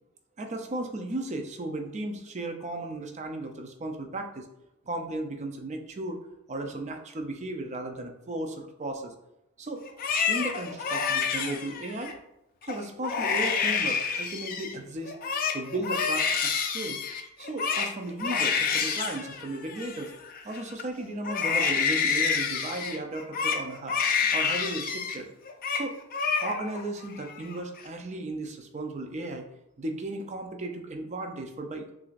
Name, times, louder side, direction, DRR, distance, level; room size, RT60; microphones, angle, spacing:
voice 1, 0.4-4.5 4.9-6.2 6.5-9.1 9.6-9.8 10.3-12.1 12.6-15.1 15.5-17.0 17.4-20.1 20.4-24.0 24.3-25.3 25.7-25.9 26.4-29.5 29.8-31.9, right 2 dB, 30° right, 4 dB, 0.5 m, -35 dB
Crying sobbing, 9.8-12.1 12.6-12.8 13.0-14.7 15.1-20.8 21.2-25.2 25.4-25.8 26.1-26.8 27.2-27.8, left 6 dB, 40° left, 0.4 m, -28 dB
6.0 x 2.5 x 2.4 m, 0.86 s
head